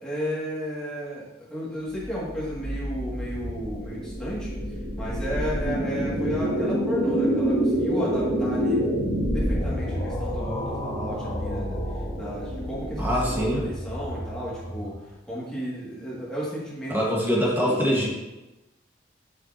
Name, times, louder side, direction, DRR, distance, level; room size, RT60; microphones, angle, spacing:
voice 1, 0.0-4.5 5.0-11.8 12.2-15.0 15.3-17.3 17.6-18.0, equal, 5° left, -8 dB, 2.4 m, -33 dB
sound 1, 1.9-15.1, equal, 25° left, 1.7 m, -28 dB
voice 2, 13.0-13.7 16.9-18.1, equal, 10° right, -4 dB, 1.7 m, -24 dB
7.2 x 6.6 x 3.0 m, 1.0 s
head